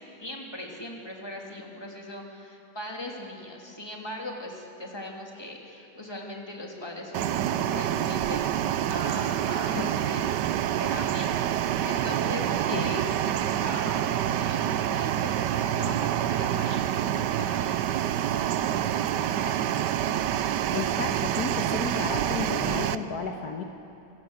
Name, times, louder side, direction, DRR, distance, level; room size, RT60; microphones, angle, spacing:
voice 1, 0.2-8.6 8.9-10.4 10.8-19.6, left 1 dB, 15° left, -1 dB, 3.0 m, -40 dB
sound 1, 7.1-23.0, right 11 dB, 85° right, 1.3 m, -27 dB
voice 2, 20.7-23.6, left 5 dB, 65° left, 3 dB, 1.8 m, -33 dB
24.0 x 17.5 x 8.2 m, 2.9 s
omnidirectional pair, 1.8 m